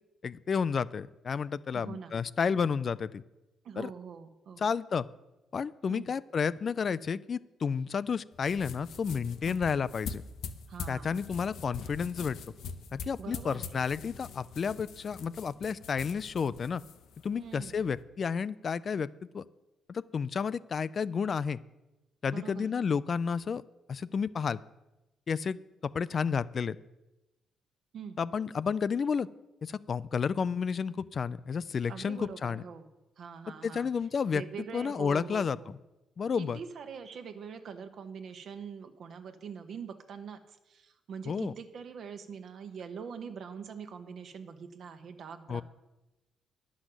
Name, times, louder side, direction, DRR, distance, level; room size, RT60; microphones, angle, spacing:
voice 1, 0.2-3.2 3.8-3.9 4.6-5.1 5.5-10.2 10.9-12.4 12.9-16.8 17.2-19.1 19.3-19.4 19.9-21.6 22.2-23.6 23.9-24.6 25.3-26.8 28.2-29.3 29.6-32.6 33.6-34.4 34.7-35.6 36.2-36.6 41.3-41.5 45.5-45.6, left 6 dB, 45° left, 17 dB, 0.4 m, -31 dB
voice 2, 1.7-2.1 3.6-4.7 5.8-6.1 9.5-9.6 10.7-11.3 13.2-13.8 17.3-17.9 22.3-22.7 27.9-28.2 31.9-32.9 33.2-33.9 34.3-35.7 36.3-45.6, right 6 dB, 65° right, 8 dB, 1.1 m, -44 dB
sound 1, 8.3-18.0, left 6 dB, 75° left, 0.8 m, -44 dB
10.5 x 6.2 x 7.9 m, 1.0 s
cardioid pair, 90°, 0 cm